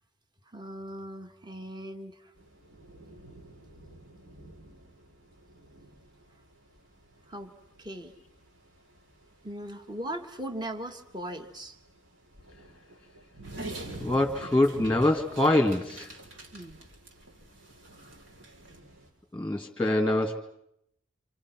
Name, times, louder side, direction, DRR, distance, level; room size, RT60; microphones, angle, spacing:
voice 1, 0.5-2.3 7.3-7.5 7.8-8.1 9.4-11.8 16.5-16.8, right 1 dB, 20° right, 6 dB, 1.8 m, -39 dB
sound 1, 2.3-19.1, right 1 dB, 90° right, 7.8 m, -50 dB
Dog, 13.4-18.8, right 2 dB, 70° right, 4.2 m, -47 dB
voice 2, 14.0-16.1 19.3-20.4, left 1 dB, 5° left, 4 dB, 2.1 m, -24 dB
28.0 x 28.0 x 6.1 m, 0.76 s
head